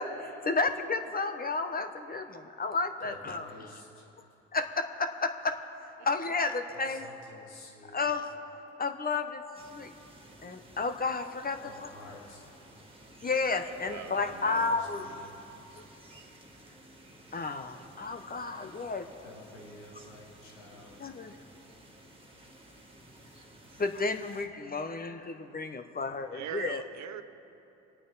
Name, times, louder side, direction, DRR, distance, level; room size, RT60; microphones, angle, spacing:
voice 1, 0.0-3.7 4.5-5.5 6.0-7.1 7.9-8.3 8.8-9.4 9.7-9.9 10.4-11.9 13.2-15.0 17.3-19.0 21.0-21.3 23.8-26.8, left 3 dB, 25° left, 1.1 m, -32 dB
voice 2, 3.0-4.1 6.7-8.1 11.6-12.7 14.0-15.7 19.2-21.1 22.7-23.4 26.0-26.5, left 2 dB, 85° left, 2.6 m, -51 dB
sound 1, 9.5-24.5, right 1 dB, 15° right, 2.2 m, -54 dB
voice 3, 13.6-14.7 26.3-27.2, right 10 dB, 55° right, 1.0 m, -42 dB
26.5 x 9.1 x 4.1 m
hypercardioid pair, 60°, 33 cm